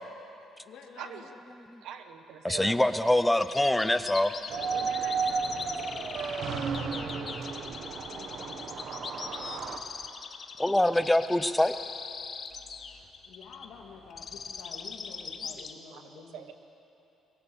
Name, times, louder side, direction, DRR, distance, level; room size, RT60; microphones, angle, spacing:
voice 1, 0.6-1.3 4.7-5.6 7.9-8.8 13.3-16.4, left 5 dB, 65° left, 0 dB, 2.2 m, -49 dB
voice 2, 1.8-2.8 15.9-16.0 16.3-16.5, right 8 dB, 80° right, 7 dB, 1.3 m, -42 dB
voice 3, 2.4-4.3 10.6-11.8, left 1 dB, 5° left, 12 dB, 0.6 m, -24 dB
sound 1, 3.4-15.7, left 5 dB, 35° left, 1.0 m, -41 dB
sound 2, 4.5-9.8, right 5 dB, 55° right, 1.3 m, -33 dB
22.5 x 17.0 x 7.1 m, 2.9 s
cardioid pair, 160°, 0 cm